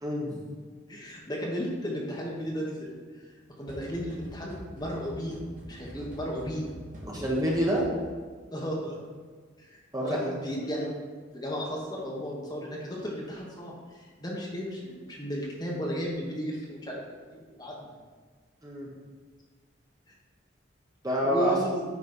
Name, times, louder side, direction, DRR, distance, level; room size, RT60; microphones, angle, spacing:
voice 1, 0.0-0.4 5.9-6.1 7.0-7.8 9.9-10.4 18.6-18.9 21.0-21.6, right 1 dB, 20° right, -3 dB, 1.3 m, -27 dB
voice 2, 0.9-2.9 3.6-6.7 8.5-9.0 9.6-11.0 11.3-17.0 17.3-17.9 21.2-21.8, equal, 20° left, -3 dB, 1.4 m, -34 dB
sound 1, 3.7-8.3, equal, 40° right, 1.9 m, -45 dB
9.6 x 4.3 x 5.5 m, 1.5 s
head